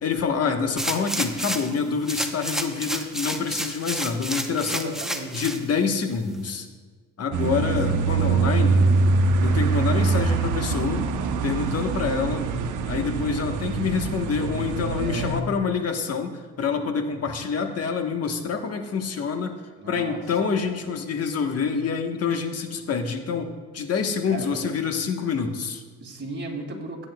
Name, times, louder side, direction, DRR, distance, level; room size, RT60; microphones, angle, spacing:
voice 1, 0.0-4.9 5.3-6.7 7.2-8.9 9.4-11.0 11.4-12.5 12.9-19.5 19.9-25.8, left 5 dB, 55° left, 5 dB, 1.2 m, -27 dB
sound 1, 0.8-1.7 2.1-5.6 6.1-6.2, right 1 dB, ahead, 0.8 m, -30 dB
voice 2, 4.6-5.4 7.6-8.0 14.9-15.3 19.8-20.2 20.6-20.7 24.3-24.8 26.0-27.1, right 2 dB, 35° right, 0 dB, 2.4 m, -36 dB
sound 2, 7.3-15.4, right 4 dB, 85° right, 0.8 m, -23 dB
17.0 x 8.9 x 2.3 m, 1.5 s
cardioid pair, 90°, 30 cm